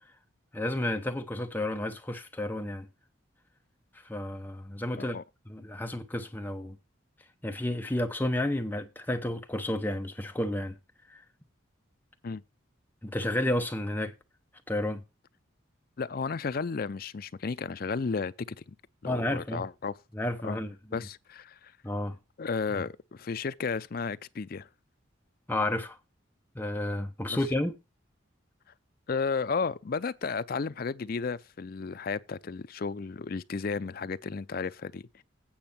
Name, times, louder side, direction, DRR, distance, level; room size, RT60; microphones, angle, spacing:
voice 1, 0.5-2.9 3.9-5.2 5.5-6.8 7.4-10.8 11.1-11.2 13.0-14.1 14.7-15.0 19.0-19.6 20.1-21.0 21.8-22.2 25.5-26.0 26.5-27.8, left 1 dB, 10° left, 0.8 m, -31 dB
voice 2, 16.0-18.6 19.0-19.9 20.4-20.6 20.9-21.7 22.4-24.7 27.3-27.4 29.1-35.2, left 5 dB, 45° left, 0.4 m, -33 dB
8.8 x 6.2 x 5.7 m
head